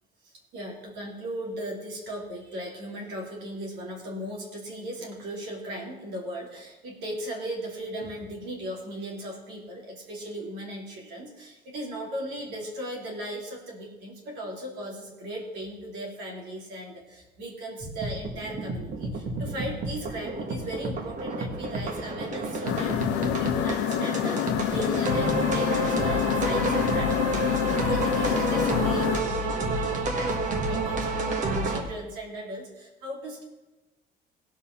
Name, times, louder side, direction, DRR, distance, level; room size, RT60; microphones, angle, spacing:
voice 1, 0.2-33.4, right 1 dB, 90° right, -1 dB, 2.9 m, -37 dB
sound 1, 17.8-31.8, right 2 dB, 45° right, 1.7 m, -29 dB
sound 2, 22.7-29.2, left 11 dB, 90° left, 0.8 m, -27 dB
16.0 x 5.4 x 5.9 m, 1.1 s
cardioid pair, 110°, 17 cm